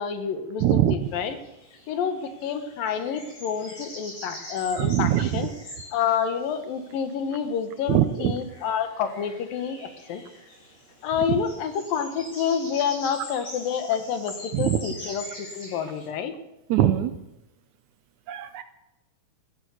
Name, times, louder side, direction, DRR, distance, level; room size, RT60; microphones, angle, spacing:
voice 1, 0.0-1.4 1.9-5.5 5.9-10.2 11.0-15.3 15.5-16.3, left 7 dB, 90° left, 8 dB, 3.1 m, -28 dB
voice 2, 0.6-0.9 4.8-5.4 7.9-8.3 14.5-14.8 16.7-17.1 18.3-18.6, right 12 dB, 75° right, 10 dB, 1.9 m, -22 dB
sound 1, 1.0-16.1, left 1 dB, 70° left, 8.2 m, -44 dB
14.5 x 11.0 x 8.1 m, 0.93 s
omnidirectional pair, 3.9 m